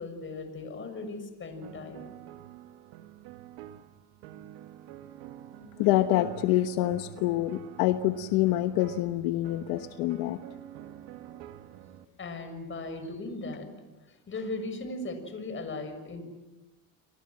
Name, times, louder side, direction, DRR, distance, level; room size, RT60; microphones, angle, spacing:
voice 1, 0.0-2.0 12.2-13.7 14.0-16.2, left 2 dB, 30° left, 8 dB, 6.6 m, -38 dB
sound 1, 1.6-12.1, right 12 dB, 85° right, 1.8 m, -47 dB
voice 2, 5.8-10.4, left 15 dB, 80° left, 10 dB, 1.2 m, -26 dB
30.0 x 24.5 x 7.7 m, 1.1 s
cardioid pair, 115°, 37 cm